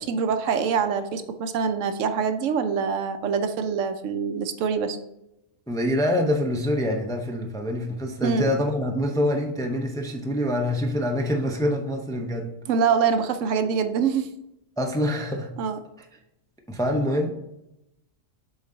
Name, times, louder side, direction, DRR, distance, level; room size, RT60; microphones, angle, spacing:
voice 1, 0.0-5.0 8.2-8.5 12.7-14.3 15.6-15.8, right 6 dB, 75° right, 9 dB, 1.0 m, -25 dB
voice 2, 5.7-12.5 14.8-15.5 16.7-17.4, left 1 dB, 5° left, 2 dB, 0.5 m, -25 dB
7.1 x 4.2 x 3.9 m, 0.86 s
omnidirectional pair, 1.3 m